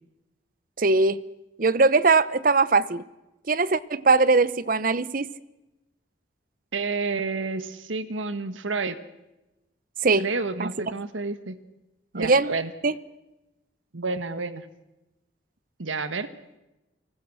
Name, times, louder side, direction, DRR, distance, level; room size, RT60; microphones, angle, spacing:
voice 1, 0.8-1.2 1.6-3.0 3.5-5.2 10.0-10.3 10.6-10.7 12.2-12.5 12.8-13.0, right 3 dB, 45° right, 18 dB, 0.7 m, -20 dB
voice 2, 6.7-9.0 10.2-11.6 12.1-12.7 13.9-14.6 15.8-16.3, right 3 dB, 85° right, 12 dB, 1.6 m, -30 dB
29.0 x 19.5 x 6.3 m, 0.99 s
head